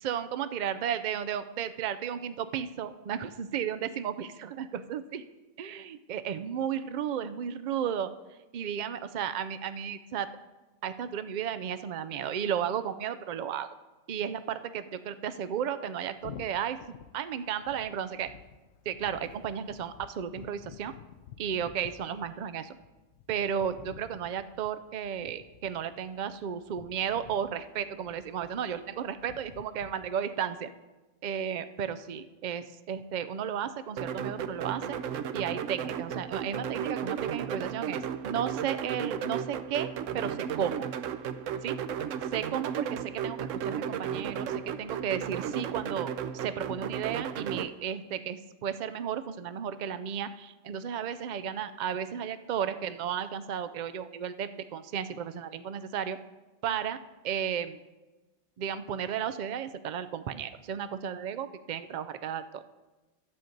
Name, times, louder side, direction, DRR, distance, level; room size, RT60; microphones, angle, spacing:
voice 1, 0.0-5.2 5.6-8.1 8.5-10.3 10.8-13.7 14.1-16.8 17.1-18.3 18.9-20.9 21.4-22.8 23.3-30.7 31.2-35.0 35.3-40.8 41.6-41.8 42.3-56.2 56.6-57.0 57.2-57.8 58.6-62.6, right 8 dB, 90° right, 12 dB, 0.4 m, -34 dB
sound 1, 16.2-30.1, left 9 dB, 65° left, 0.8 m, -51 dB
sound 2, 34.0-47.7, right 8 dB, 75° right, 0.9 m, -34 dB
12.0 x 5.2 x 7.7 m, 1.1 s
omnidirectional pair, 1.4 m